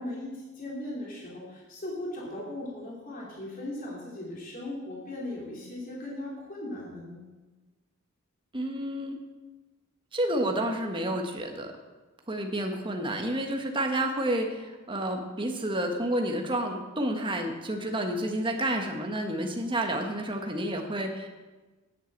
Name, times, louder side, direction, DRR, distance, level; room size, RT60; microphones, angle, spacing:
voice 1, 0.0-7.2, left 1 dB, 40° left, -5 dB, 3.3 m, -38 dB
voice 2, 8.5-9.2 10.1-11.7 12.3-21.3, right 1 dB, 25° right, 3 dB, 1.4 m, -30 dB
9.8 x 8.4 x 8.1 m, 1.2 s
head